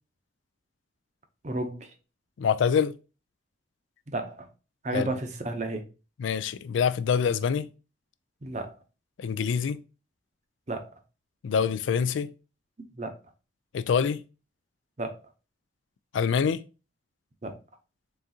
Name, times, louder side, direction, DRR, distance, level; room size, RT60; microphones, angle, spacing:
voice 1, 1.4-1.9 4.1-4.5 4.8-5.8 8.4-8.7 10.7-10.9 13.0-13.1 15.0-15.2 17.4-17.6, right 2 dB, 40° right, 0.6 m, -32 dB
voice 2, 2.4-2.9 4.9-5.1 6.2-7.7 9.2-9.8 11.4-12.3 13.7-14.2 16.1-16.6, left 7 dB, 85° left, 0.3 m, -25 dB
3.9 x 3.6 x 2.7 m
head